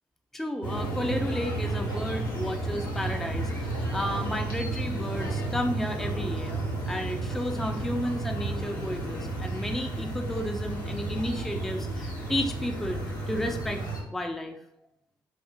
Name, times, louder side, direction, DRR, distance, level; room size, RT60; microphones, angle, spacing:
voice 1, 0.3-13.8 14.1-14.6, left 1 dB, 5° left, 4 dB, 0.3 m, -32 dB
sound 1, 0.6-14.0, right 2 dB, 85° left, 0.5 m, -32 dB
Hammer / Wood, 1.3-1.6 1.9-4.8 5.2-6.2, right 1 dB, 85° right, 0.6 m, -49 dB
2.8 x 2.4 x 2.2 m, 0.75 s
figure-of-eight pair, 40°, 11 cm